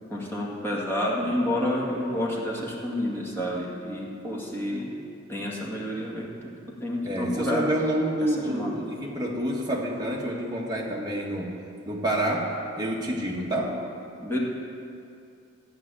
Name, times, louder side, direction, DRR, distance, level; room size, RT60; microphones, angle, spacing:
voice 1, 0.1-4.9 5.3-6.5 6.8-7.6 8.2-8.7 14.2-14.4, left 1 dB, 10° left, -4 dB, 2.0 m, -29 dB
voice 2, 7.0-11.6 11.8-13.8, right 1 dB, 20° right, -2 dB, 1.5 m, -28 dB
13.0 x 5.8 x 8.8 m, 2.5 s
head